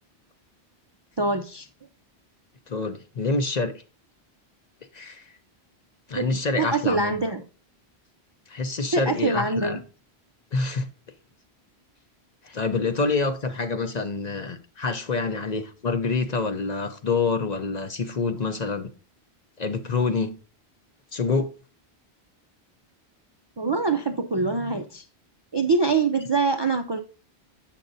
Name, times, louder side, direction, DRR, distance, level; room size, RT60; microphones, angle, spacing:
voice 1, 1.2-1.7 6.1-6.3 6.6-7.4 8.9-9.8 23.6-25.0 25.5-27.0, right 3 dB, 40° right, 0.4 m, -24 dB
voice 2, 2.7-3.7 4.9-5.3 6.1-7.2 8.5-9.8 10.5-10.9 12.4-18.9 19.6-20.3 21.1-21.5, left 4 dB, 45° left, 0.7 m, -26 dB
7.5 x 7.3 x 2.6 m
omnidirectional pair, 1.1 m